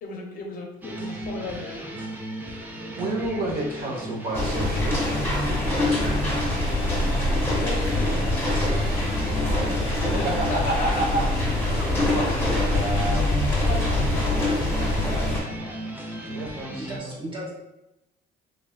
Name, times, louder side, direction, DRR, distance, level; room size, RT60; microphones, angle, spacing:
voice 1, 0.0-1.8 7.6-8.4 9.3-9.7 10.2-11.0 11.8-11.9 12.1-12.6 13.6-15.8, left 3 dB, 55° left, 1 dB, 0.5 m, -36 dB
sound 1, 0.8-17.0, right 1 dB, 10° right, 0.4 m, -35 dB
voice 2, 3.0-5.7 10.1-11.2 11.6-11.7 12.1-13.5 16.3-17.1, right 2 dB, 65° right, -1 dB, 0.8 m, -30 dB
sound 2, 4.3-15.4, left 1 dB, 15° left, 1.1 m, -24 dB
voice 3, 16.8-17.5, right 1 dB, 30° right, -3 dB, 0.9 m, -35 dB
3.4 x 2.3 x 2.3 m, 0.92 s
cardioid pair, 110°, 17 cm